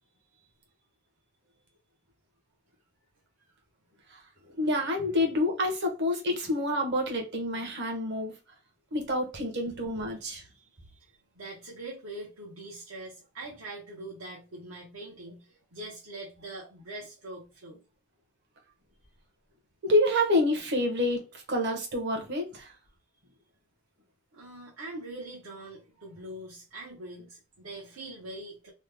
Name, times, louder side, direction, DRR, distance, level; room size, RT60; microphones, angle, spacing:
voice 1, 4.6-8.3 8.9-10.4 19.8-22.7, left 1 dB, 55° right, 1.0 m, -28 dB
voice 2, 10.4-17.8 24.3-28.7, right 2 dB, 80° right, 1.0 m, -43 dB
3.1 x 2.2 x 3.4 m
head